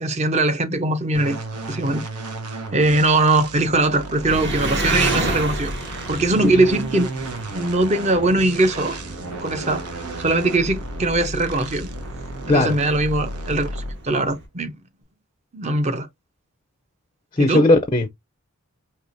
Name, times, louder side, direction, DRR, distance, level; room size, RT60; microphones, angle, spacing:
voice 1, 0.0-1.4 1.7-2.0 2.7-5.7 6.1-7.1 7.5-9.0 9.4-9.8 10.2-11.9 12.5-14.7 15.5-16.1 17.4-17.7, right 2 dB, 30° right, 0.6 m, -21 dB
sound 1, 1.1-14.1, right 2 dB, 90° right, 0.9 m, -33 dB
Engine, 4.2-14.4, right 2 dB, 50° right, 1.2 m, -31 dB
voice 2, 17.4-18.1, left 2 dB, 20° left, 0.4 m, -17 dB
4.7 x 2.9 x 2.5 m
head